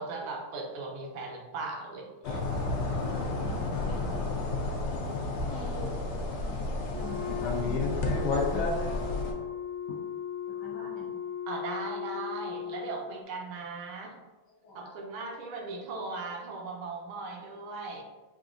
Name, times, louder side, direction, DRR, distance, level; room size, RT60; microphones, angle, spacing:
voice 1, 0.0-2.4 5.7-6.3 11.5-14.2 14.7-18.0, right 3 dB, 80° right, 1 dB, 1.4 m, -38 dB
sound 1, 2.2-9.3, left 2 dB, 80° left, 0.9 m, -31 dB
voice 2, 3.4-4.4 5.4-5.9 6.4-6.6 6.9-7.9 8.5-9.5 9.9-10.0 10.5-11.1 14.6-14.9, left 3 dB, 60° left, -6 dB, 1.3 m, -45 dB
Wind instrument woodwind instrument, 6.8-13.0, left 9 dB, 60° right, 0.9 m, -37 dB
5.0 x 2.6 x 2.5 m, 1.2 s
omnidirectional pair, 2.4 m